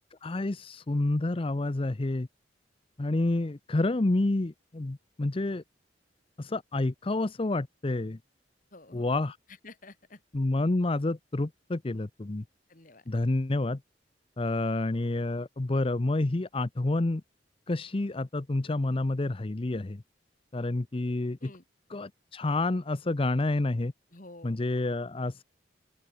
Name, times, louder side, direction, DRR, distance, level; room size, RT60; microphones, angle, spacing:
voice 1, 0.2-2.3 3.0-5.6 6.4-8.2 8.9-9.4 10.3-12.4 13.1-13.8 14.4-17.2 17.7-20.0 20.5-21.5 21.9-23.9 24.4-25.4, left 2 dB, 30° left, 0.6 m, -29 dB
voice 2, 8.7-9.1 9.5-10.2 12.7-13.0 21.4-21.6 24.1-24.6, left 2 dB, 45° left, 3.2 m, -50 dB
open air
head